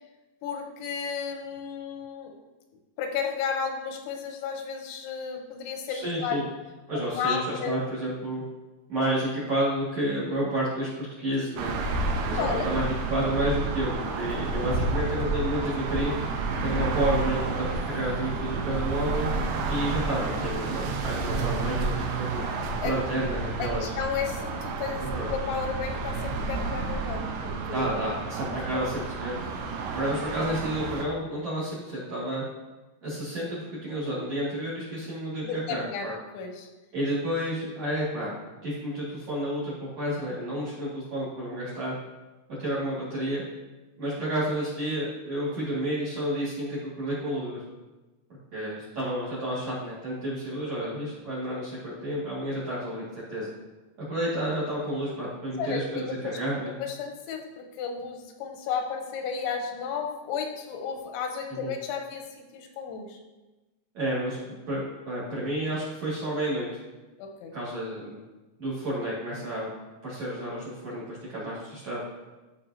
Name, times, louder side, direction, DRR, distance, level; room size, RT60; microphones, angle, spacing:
voice 1, 0.4-2.3 3.0-6.4 7.2-7.8 12.4-12.7 22.8-22.9 23.6-27.9 28.7-28.9 35.4-36.7 55.6-56.4 56.8-63.2 67.2-67.5, left 6 dB, 90° left, 4 dB, 3.1 m, -33 dB
voice 2, 5.9-6.4 6.9-8.4 8.9-10.9 11.2-11.7 12.3-12.8 13.1-16.1 16.6-19.3 19.7-22.4 22.8-23.8 25.0-25.3 27.7-29.4 29.9-32.4 33.0-36.2 36.9-38.3 38.6-41.9 42.6-43.4 44.0-47.6 48.5-53.0 53.3-53.5 54.1-56.7 61.5-61.7 63.9-66.7 67.5-68.2 68.6-69.7 70.0-72.0, right 1 dB, 45° right, -8 dB, 2.3 m, -30 dB
sound 1, 11.6-31.1, right 3 dB, 80° right, 2.5 m, -30 dB
13.5 x 5.1 x 2.8 m, 1.1 s
omnidirectional pair, 5.4 m